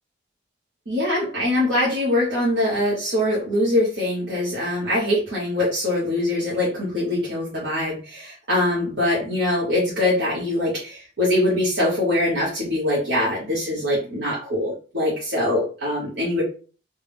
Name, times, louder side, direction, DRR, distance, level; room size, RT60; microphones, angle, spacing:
voice 1, 0.9-16.4, left 1 dB, 65° right, -7 dB, 1.3 m, -23 dB
3.3 x 2.2 x 3.5 m, 0.37 s
head